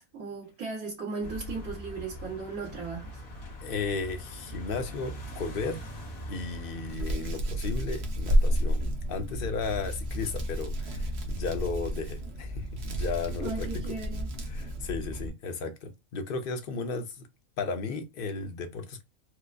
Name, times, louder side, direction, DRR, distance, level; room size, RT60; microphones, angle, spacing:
voice 1, 0.0-3.2 13.4-14.3, right 4 dB, 80° right, 1.7 m, -37 dB
sound 1, 1.2-7.0, equal, 85° left, 1.5 m, -41 dB
voice 2, 3.6-5.8 6.3-13.7 14.5-17.1 17.6-19.0, left 4 dB, 55° left, 0.7 m, -34 dB
Hands, 6.9-15.3, equal, 55° right, 1.0 m, -31 dB
4.6 x 2.0 x 2.4 m
omnidirectional pair, 1.4 m